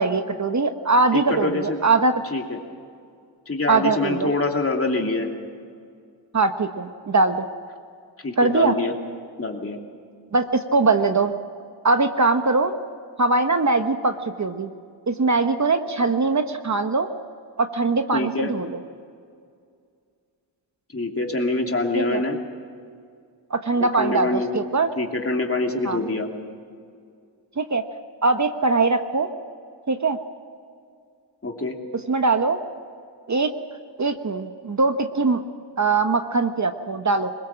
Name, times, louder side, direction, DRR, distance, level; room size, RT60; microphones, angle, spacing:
voice 1, 0.0-2.1 3.7-4.3 6.3-7.5 8.4-8.7 10.3-11.3 11.8-12.7 13.2-14.7 15.1-17.1 17.6-18.8 21.9-22.2 23.5-24.9 25.8-26.0 27.6-27.8 28.2-29.3 29.9-30.2 32.1-32.6 33.3-33.5 34.0-35.4 35.8-37.3, right 3 dB, 40° right, 7 dB, 1.2 m, -21 dB
voice 2, 1.1-1.8 2.3-2.6 3.5-5.3 8.2-8.9 9.4-9.8 18.1-18.5 20.9-22.4 23.8-24.5 25.0-26.3 31.4-31.7, left 2 dB, 30° left, 2 dB, 2.8 m, -25 dB
22.5 x 20.5 x 7.4 m, 2.3 s
cardioid pair, 75°, 43 cm